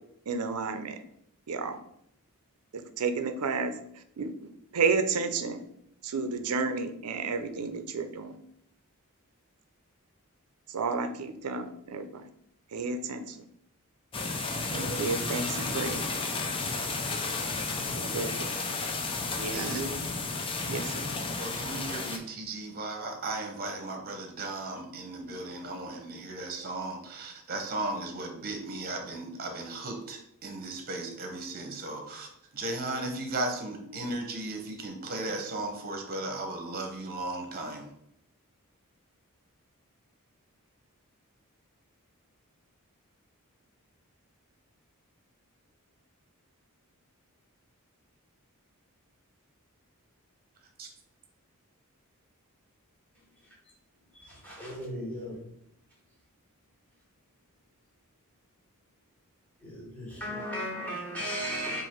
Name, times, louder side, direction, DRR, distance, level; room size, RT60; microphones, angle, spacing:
voice 1, 0.3-1.0 1.5-1.8 3.0-3.7 4.2-4.5 4.7-5.6 6.0-8.3 10.7-12.2 12.7-13.4 14.7-16.1 17.9-18.5 19.4-20.1 20.7-21.1, right 4 dB, 80° right, 0.5 m, -31 dB
sound 1, 14.1-22.2, left 3 dB, 25° left, 0.5 m, -32 dB
voice 2, 19.5-19.8 21.4-32.3 32.5-37.9 50.8-50.9, right 2 dB, 45° right, 0.9 m, -36 dB
voice 3, 54.1-55.4 59.6-61.8, equal, 5° left, 1.6 m, -36 dB
4.6 x 2.6 x 4.4 m
head